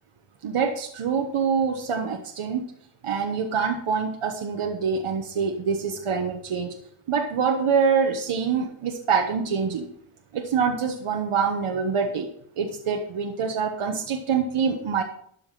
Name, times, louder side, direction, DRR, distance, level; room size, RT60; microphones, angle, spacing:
voice 1, 0.4-2.6 3.0-6.7 7.1-9.9 10.3-12.3 12.6-15.0, right 6 dB, 80° right, 3 dB, 1.2 m, -25 dB
12.5 x 5.8 x 5.8 m, 0.65 s
wide cardioid pair, 95°, 50 cm